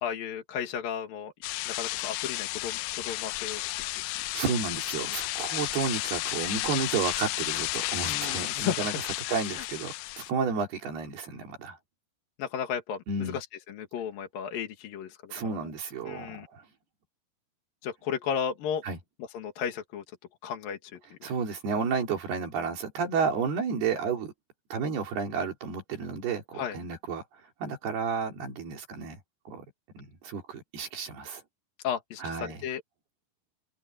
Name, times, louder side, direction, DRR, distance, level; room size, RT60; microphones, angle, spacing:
voice 1, 0.0-1.3 1.7-3.8 5.0-5.1 8.0-9.0 9.2-9.6 12.4-15.3 16.0-16.5 17.8-18.8 19.2-20.0 20.4-21.2 26.5-26.8 31.8-32.8, left 8 dB, 65° left, 3.4 m, -34 dB
sound 1, 1.4-10.3, left 19 dB, 80° left, 2.2 m, -33 dB
voice 2, 4.3-8.9 9.3-11.8 13.1-13.4 15.3-16.7 18.8-19.0 21.2-24.3 24.7-27.2 27.6-29.2 29.5-29.7 30.0-31.4 32.2-32.6, right 5 dB, 75° right, 5.3 m, -31 dB
omnidirectional pair, 4.6 m